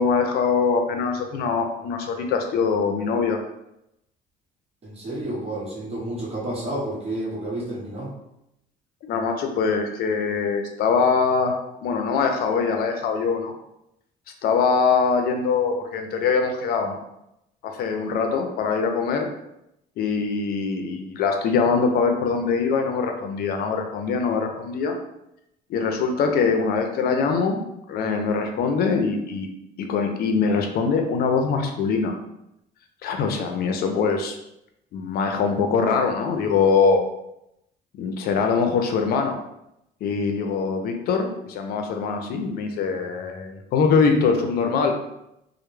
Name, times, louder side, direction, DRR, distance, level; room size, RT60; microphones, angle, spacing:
voice 1, 0.0-3.4 9.0-13.5 14.4-17.0 17.6-19.3 20.0-25.0 25.7-27.6 27.9-29.5 29.8-32.2 33.0-34.3 34.9-37.0 38.0-39.4 40.0-44.9, left 5 dB, 65° left, 5 dB, 0.5 m, -23 dB
voice 2, 4.8-8.1, right 1 dB, 35° right, -5 dB, 0.9 m, -30 dB
2.1 x 2.0 x 3.1 m, 0.84 s
cardioid pair, 110°, 17 cm